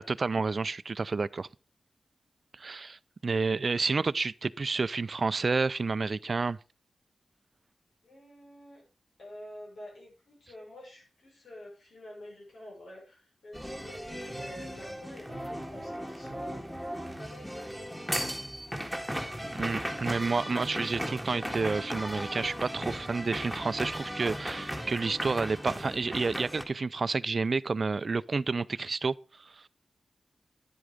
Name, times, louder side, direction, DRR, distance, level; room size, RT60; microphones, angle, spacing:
voice 1, 0.0-1.5 2.5-6.6 19.6-29.7, right 4 dB, 50° right, 0.5 m, -30 dB
voice 2, 8.0-8.8 9.2-16.6 17.2-18.3, left 1 dB, 85° left, 5.8 m, -48 dB
sound 1, 13.5-26.6, equal, ahead, 2.0 m, -37 dB
11.0 x 7.8 x 5.0 m
wide cardioid pair, 85°, 0 cm